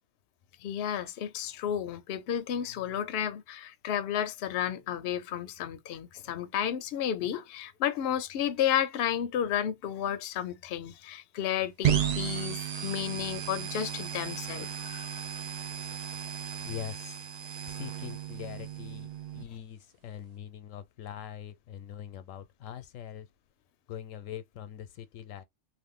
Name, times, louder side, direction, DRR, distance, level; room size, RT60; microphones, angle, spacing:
voice 1, 0.6-15.2, left 10 dB, 65° left, 0.7 m, -32 dB
sound 1, 11.8-19.4, right 9 dB, 85° right, 0.3 m, -34 dB
voice 2, 16.6-17.3 17.7-23.3 23.9-25.4, left 10 dB, 85° left, 1.0 m, -43 dB
2.5 x 2.5 x 3.5 m
omnidirectional pair, 1.3 m